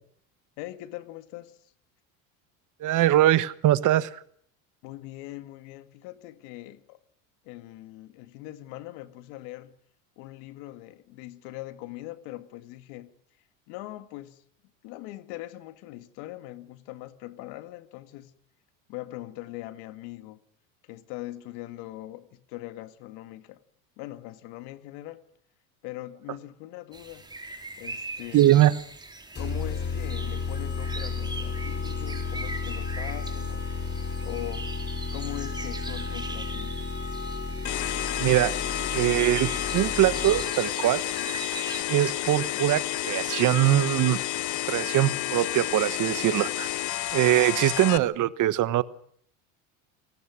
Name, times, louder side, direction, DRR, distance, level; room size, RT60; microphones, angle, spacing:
voice 1, 0.6-1.7 4.8-7.0 7.4-9.7 10.2-13.1 13.7-14.4 14.8-18.3 18.9-20.4 20.8-23.6 24.0-25.2 25.8-27.3 27.8-28.8 29.4-33.7 34.2-34.7 35.1-36.9 47.5-47.7, left 16 dB, 75° left, 2.1 m, -41 dB
voice 2, 2.8-4.2 28.3-28.7 38.2-38.5 38.9-41.0 41.9-44.2 44.7-46.7 47.1-48.8, right 14 dB, 50° right, 1.2 m, -22 dB
sound 1, 26.9-41.8, right 2 dB, 10° right, 3.6 m, -41 dB
sound 2, 29.4-40.7, left 4 dB, 25° left, 3.8 m, -33 dB
sound 3, 37.6-48.0, left 14 dB, 45° left, 1.1 m, -30 dB
28.0 x 19.0 x 6.3 m
supercardioid pair, 105°, 40 cm